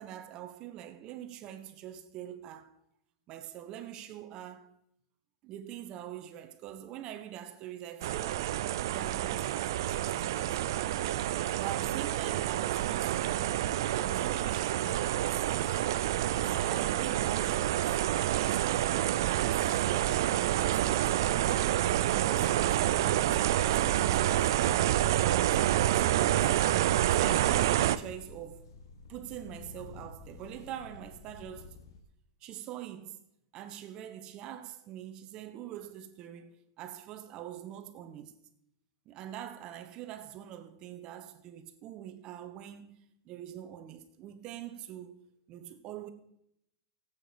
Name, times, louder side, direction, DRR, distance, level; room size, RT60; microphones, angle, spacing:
voice 1, 0.0-2.7 3.3-4.7 5.4-8.4 8.9-10.9 11.6-15.7 16.3-18.0 18.3-21.5 21.8-26.5 27.1-28.6 29.1-31.7 32.4-33.2 33.5-38.4 39.0-43.0 43.2-45.2 45.5-46.1, right 11 dB, 40° right, 1.3 m, -44 dB
sound 1, 8.0-28.0, right 13 dB, 75° right, 0.6 m, -28 dB
sound 2, 15.7-32.0, left 4 dB, 85° left, 2.2 m, -52 dB
15.5 x 8.5 x 5.3 m
supercardioid pair, 140°, 2 cm